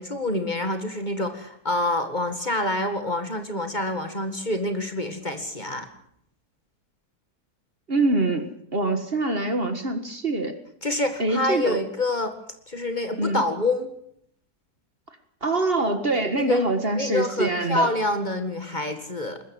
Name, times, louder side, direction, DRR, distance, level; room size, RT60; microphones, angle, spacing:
voice 1, 0.0-5.9 10.8-12.3 12.7-13.9 16.4-19.4, left 2 dB, 30° left, 7 dB, 2.0 m, -27 dB
voice 2, 7.9-10.6 11.2-11.8 13.2-13.4 15.4-17.9, right 2 dB, 40° right, 8 dB, 1.9 m, -24 dB
21.0 x 13.5 x 9.4 m, 0.69 s
omnidirectional pair, 1.6 m